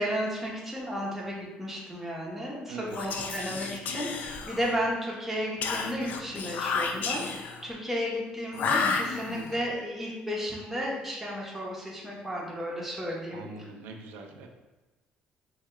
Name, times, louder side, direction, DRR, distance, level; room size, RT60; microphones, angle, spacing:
voice 1, 0.0-13.5, equal, 5° right, -4 dB, 1.0 m, -33 dB
voice 2, 2.7-3.0 13.3-14.5, right 4 dB, 85° right, 3 dB, 0.5 m, -42 dB
Whispering, 2.9-4.9 5.6-7.6 8.5-9.6, left 5 dB, 60° left, 0.4 m, -31 dB
4.6 x 2.8 x 2.3 m, 1.1 s
cardioid pair, 110°, 3 cm